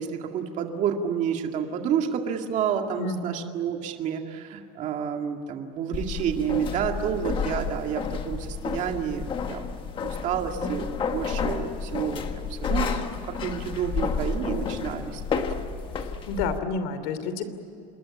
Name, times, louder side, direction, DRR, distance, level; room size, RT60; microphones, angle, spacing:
voice 1, 0.0-9.6 10.0-15.4, right 8 dB, 35° right, 4 dB, 2.1 m, -29 dB
voice 2, 3.0-3.6 15.9-17.5, left 4 dB, 75° left, 11 dB, 3.0 m, -30 dB
sound 1, 5.9-16.6, left 5 dB, 25° left, 1.4 m, -31 dB
27.0 x 21.5 x 8.7 m, 2.7 s
cardioid pair, 180°, 21 cm